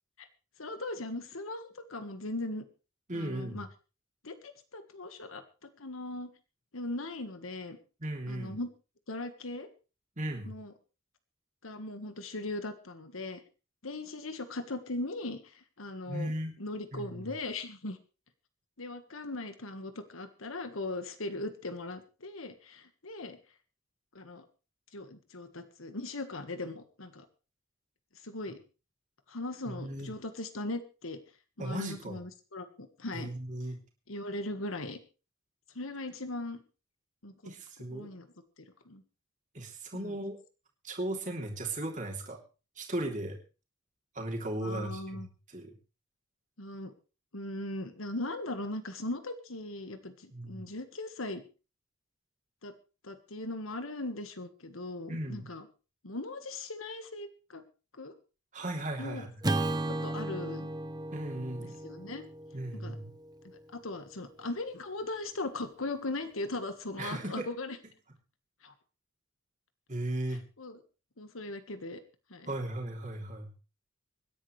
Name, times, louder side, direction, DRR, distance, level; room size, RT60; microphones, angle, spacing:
voice 1, 0.6-2.7 3.1-3.7 4.2-5.4 5.8-6.3 6.7-7.8 8.3-8.7 9.1-9.7 10.5-10.7 11.6-13.4 13.8-16.3 16.6-18.0 18.8-23.4 24.2-24.5 24.9-27.3 28.2-28.6 29.3-31.2 31.6-33.3 34.1-35.0 35.8-36.6 37.2-37.3 37.9-38.3 38.9-39.0 39.9-40.2 44.6-45.3 46.6-46.9 47.3-51.4 52.6-52.7 53.0-55.7 56.0-57.6 58.0-58.1 59.0-59.3 59.9-60.7 61.6-62.3 62.7-63.0 63.7-67.8 68.6-68.7 70.3-70.8 71.2-72.0 72.3-72.5, left 2 dB, 85° left, 9 dB, 1.6 m, -39 dB
voice 2, 3.1-3.6 8.0-8.6 10.2-10.5 16.1-16.6 16.9-17.3 29.7-30.1 31.6-32.2 33.1-33.8 37.4-38.1 39.5-40.4 40.8-42.4 42.8-43.4 44.2-45.7 50.3-50.6 55.1-55.5 58.5-59.4 61.1-61.8 62.5-63.1 67.0-67.5 69.9-70.4 72.5-73.5, right 1 dB, 35° right, 1 dB, 3.3 m, -36 dB
Acoustic guitar / Strum, 59.4-63.9, right 2 dB, 20° right, 0.8 m, -35 dB
25.5 x 10.5 x 3.3 m, 0.33 s
head